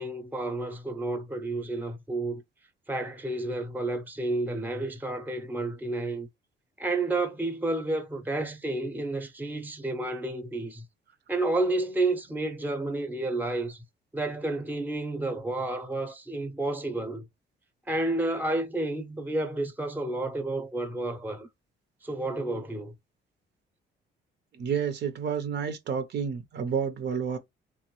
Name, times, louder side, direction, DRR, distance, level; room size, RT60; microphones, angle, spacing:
voice 1, 0.0-2.4 2.9-6.3 6.8-10.8 11.3-13.8 14.1-17.3 17.9-21.5 22.0-22.9, right 2 dB, 10° right, 0.6 m, -30 dB
voice 2, 24.5-27.4, right 7 dB, 60° right, 0.6 m, -30 dB
3.0 x 2.1 x 3.0 m
cardioid pair, 90°, 20 cm